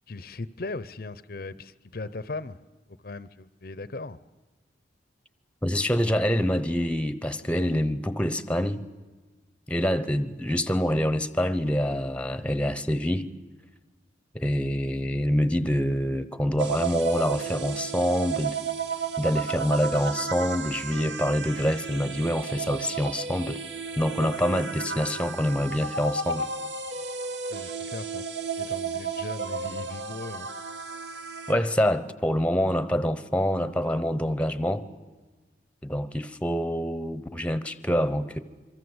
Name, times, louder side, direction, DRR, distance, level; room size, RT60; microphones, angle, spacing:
voice 1, 0.1-2.6 3.0-4.2 27.5-28.2 28.6-30.5, left 3 dB, 50° left, 0.7 m, -38 dB
voice 2, 5.6-8.8 9.7-13.3 14.3-18.6 19.2-23.6 24.0-26.5 31.5-34.8 35.8-38.4, equal, 5° left, 0.9 m, -26 dB
sound 1, 16.6-31.5, right 5 dB, 70° right, 2.0 m, -33 dB
25.5 x 24.0 x 8.0 m
head